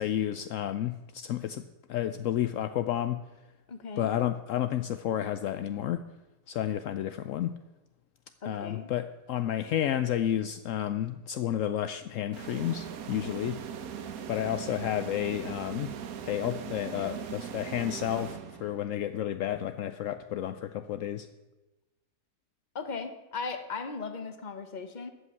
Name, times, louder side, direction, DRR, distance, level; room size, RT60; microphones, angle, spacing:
voice 1, 0.0-1.6 1.9-3.2 4.0-6.0 6.5-7.6 8.4-13.6 14.3-15.9 16.2-21.3, left 11 dB, 75° left, 10 dB, 0.7 m, -31 dB
voice 2, 3.7-4.1 8.4-8.9 22.7-25.1, left 4 dB, 30° left, 8 dB, 1.0 m, -37 dB
sound 1, 12.3-18.9, right 8 dB, 60° right, 1.2 m, -40 dB
14.0 x 5.7 x 9.4 m, 1.1 s
omnidirectional pair, 1.9 m